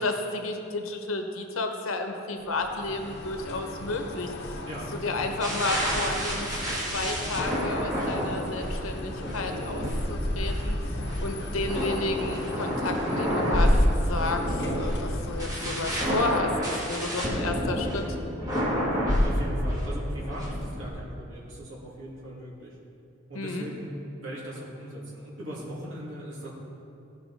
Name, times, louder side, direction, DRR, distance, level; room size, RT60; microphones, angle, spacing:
voice 1, 0.0-4.6 5.0-6.5 6.9-16.5 16.9-18.1 23.3-23.7, left 2 dB, 85° left, 4 dB, 0.9 m, -32 dB
sound 1, 2.4-16.4, left 1 dB, 55° left, 0.9 m, -39 dB
voice 2, 4.7-5.5 11.4-11.5 18.9-22.8 23.3-23.9 24.2-26.5, right 1 dB, 75° right, -6 dB, 2.4 m, -39 dB
sound 2, 5.4-20.9, equal, 20° right, 1.8 m, -28 dB
16.0 x 5.4 x 4.1 m, 2.7 s
head